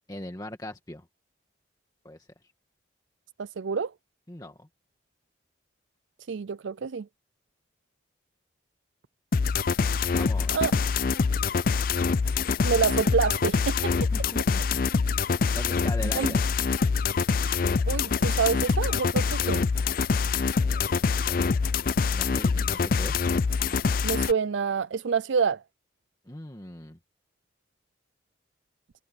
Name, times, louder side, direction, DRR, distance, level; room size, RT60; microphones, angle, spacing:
voice 1, 0.1-1.1 2.0-2.3 4.3-4.7 10.1-10.6 14.1-14.6 15.5-16.4 20.6-21.8 22.1-23.2 26.2-27.0, left 1 dB, 20° left, 1.7 m, -40 dB
voice 2, 3.4-3.9 6.3-7.1 10.5-10.7 12.6-13.9 16.1-16.3 17.9-19.7 24.0-25.6, right 6 dB, 75° right, 0.5 m, -27 dB
sound 1, 9.3-24.3, left 5 dB, 45° left, 0.4 m, -25 dB
head